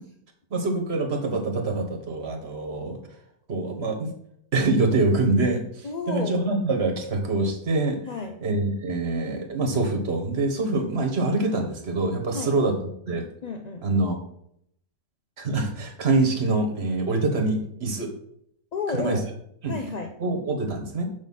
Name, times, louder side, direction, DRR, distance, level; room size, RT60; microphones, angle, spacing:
voice 1, 0.5-3.0 3.5-4.1 4.5-8.0 8.4-12.8 13.1-13.3 13.8-14.2 15.4-18.1 18.9-19.2 19.6-19.7 20.2-21.0, right 2 dB, 45° right, 4 dB, 1.6 m, -25 dB
voice 2, 5.8-6.5 8.0-8.4 12.3-12.5 13.4-13.8 18.7-19.3 19.7-20.2, left 4 dB, 45° left, 4 dB, 0.5 m, -31 dB
6.4 x 6.0 x 5.6 m, 0.71 s
omnidirectional pair, 1.5 m